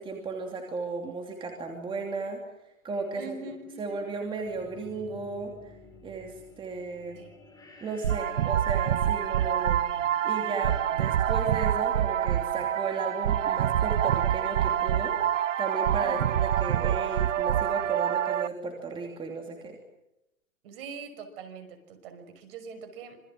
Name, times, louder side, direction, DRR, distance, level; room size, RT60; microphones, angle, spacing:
voice 1, 0.0-2.4 2.8-3.4 3.8-5.7 6.0-7.2 7.8-9.9 10.2-19.8, right 3 dB, 10° right, 2 dB, 2.9 m, -35 dB
voice 2, 3.1-3.9 7.2-7.3 15.9-16.3 20.6-23.2, right 4 dB, 45° right, 7 dB, 6.1 m, -43 dB
sound 1, 4.2-14.0, left 4 dB, 10° left, 6.5 m, -53 dB
sound 2, 8.0-18.5, right 10 dB, 65° right, 1.0 m, -26 dB
27.0 x 23.0 x 7.6 m, 0.89 s
hypercardioid pair, 140°, 41 cm